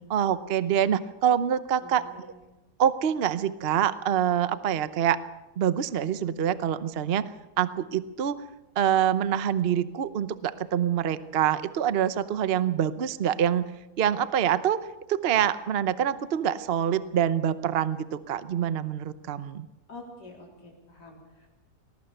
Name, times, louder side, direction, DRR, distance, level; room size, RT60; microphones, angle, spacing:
voice 1, 0.1-2.3 2.8-5.2 5.6-7.3 7.6-8.4 8.8-13.7 14.0-14.8 15.1-19.7, right 9 dB, 45° right, 13 dB, 0.8 m, -25 dB
voice 2, 1.8-2.4 19.9-21.5, left 2 dB, 80° left, -2 dB, 4.3 m, -47 dB
20.5 x 18.5 x 6.8 m, 1.0 s
omnidirectional pair, 1.8 m